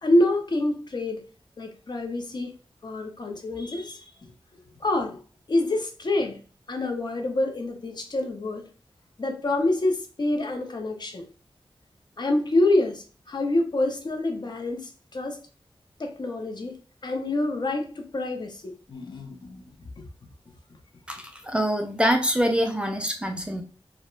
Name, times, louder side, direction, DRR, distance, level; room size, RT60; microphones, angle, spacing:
voice 1, 0.0-1.2 1.6-2.5 2.8-4.0 4.8-5.2 5.5-6.4 6.7-8.6 9.2-11.3 12.2-15.4 16.0-16.7 17.0-19.6 20.0-20.1, left 2 dB, 50° left, 0.5 m, -26 dB
voice 2, 21.1-23.6, equal, 10° right, 0.3 m, -25 dB
2.3 x 2.0 x 3.0 m
wide cardioid pair, 95°, 10 cm